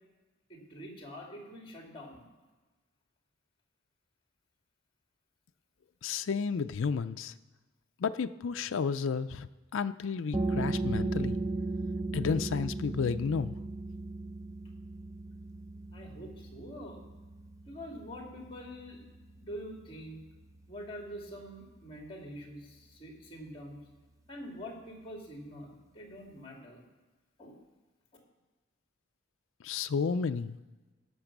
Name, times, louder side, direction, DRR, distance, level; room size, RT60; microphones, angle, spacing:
voice 1, 0.5-2.3 15.9-17.1 17.7-19.1 19.4-20.2 20.7-23.8 24.3-26.8 27.4-27.6, equal, 25° left, 1 dB, 2.5 m, -45 dB
voice 2, 6.0-7.3 8.0-9.5 9.7-11.4 12.1-13.6 29.6-30.6, left 5 dB, 70° left, 10 dB, 0.4 m, -32 dB
sound 1, 10.3-21.7, right 2 dB, 15° right, 0.6 m, -37 dB
17.0 x 6.7 x 6.0 m, 1.2 s
head